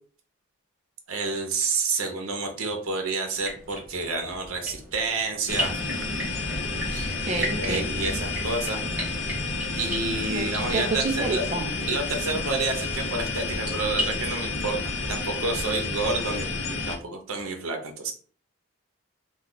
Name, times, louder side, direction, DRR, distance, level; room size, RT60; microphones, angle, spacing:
voice 1, 1.1-5.7 6.9-8.8 9.7-11.4 11.9-18.1, right 3 dB, 85° right, 3 dB, 0.7 m, -29 dB
sound 1, 3.3-15.1, equal, 5° right, 0.8 m, -37 dB
sound 2, 5.5-17.0, left 3 dB, 60° left, 0.6 m, -30 dB
voice 2, 7.1-7.9 10.3-11.7, right 2 dB, 30° right, 4 dB, 0.4 m, -30 dB
2.3 x 2.3 x 3.7 m, 0.43 s
head